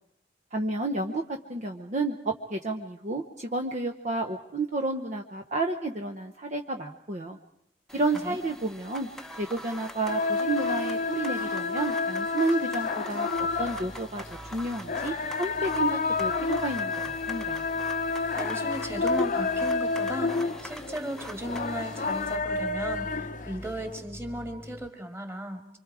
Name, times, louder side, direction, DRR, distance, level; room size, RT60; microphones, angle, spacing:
voice 1, 0.5-7.4 7.9-9.1 9.4-14.2 14.5-17.6, right 2 dB, 40° right, 4 dB, 1.0 m, -31 dB
sound 1, 7.9-22.4, equal, 5° left, 0.9 m, -44 dB
voice 2, 7.9-8.4 18.3-25.8, equal, 15° right, 5 dB, 2.4 m, -36 dB
sound 2, 10.1-24.0, left 4 dB, 45° left, 0.8 m, -30 dB
sound 3, 13.3-24.9, equal, 25° left, 1.2 m, -46 dB
26.0 x 25.0 x 4.9 m, 0.73 s
head